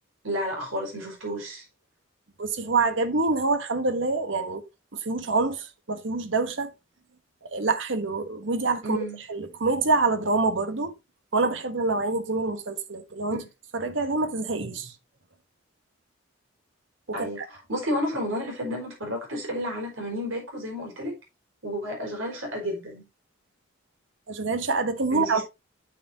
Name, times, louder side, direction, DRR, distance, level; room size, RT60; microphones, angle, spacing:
voice 1, 0.2-1.6 8.8-9.2 17.1-21.1 21.6-23.0 25.1-25.4, equal, 85° right, 5.0 m, -31 dB
voice 2, 2.4-4.7 4.9-6.7 7.4-9.0 9.3-10.9 11.3-13.4 13.7-14.9 17.1-17.4 24.3-25.4, right 3 dB, 65° right, 1.2 m, -26 dB
9.2 x 6.9 x 2.8 m
head